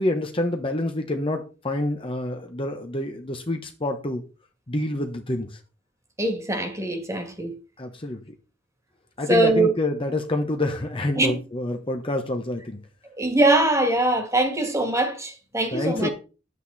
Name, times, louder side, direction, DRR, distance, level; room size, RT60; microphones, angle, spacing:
voice 1, 0.0-4.2 4.7-5.6 7.8-8.2 9.2-12.8 15.7-16.1, left 1 dB, 30° left, 1.2 m, -27 dB
voice 2, 6.2-7.5 9.3-9.7 11.2-11.4 13.2-16.1, right 2 dB, 15° right, 2.2 m, -22 dB
10.5 x 8.4 x 4.2 m
head